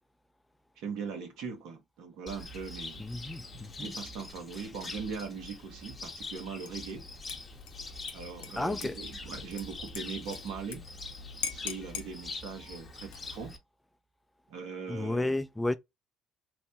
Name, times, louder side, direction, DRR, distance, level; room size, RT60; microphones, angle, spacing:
voice 1, 0.8-3.0 3.8-7.1 8.1-10.9 11.5-13.6 14.5-15.3, right 5 dB, 70° right, 1.1 m, -40 dB
Cricket, 2.3-13.6, left 3 dB, 30° left, 0.8 m, -44 dB
voice 2, 3.0-3.9 8.6-9.0 14.9-15.7, left 2 dB, 10° left, 0.3 m, -32 dB
Dishes pots and pans / Liquid, 6.6-7.0 7.3-10.8 11.0-11.1 11.4-12.1 13.0-13.5, left 7 dB, 85° left, 0.5 m, -41 dB
3.1 x 2.1 x 2.7 m
hypercardioid pair, 60°, 0 cm